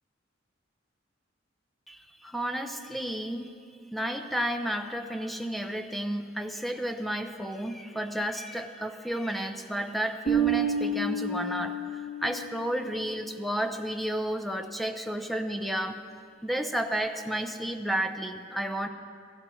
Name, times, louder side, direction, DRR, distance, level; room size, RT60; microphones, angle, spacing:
voice 1, 1.9-3.5 3.9-16.0 16.4-18.9, right 1 dB, ahead, 6 dB, 0.8 m, -32 dB
Bass guitar, 10.3-12.7, right 4 dB, 90° left, 2.9 m, -29 dB
26.5 x 15.5 x 3.2 m, 2.4 s
head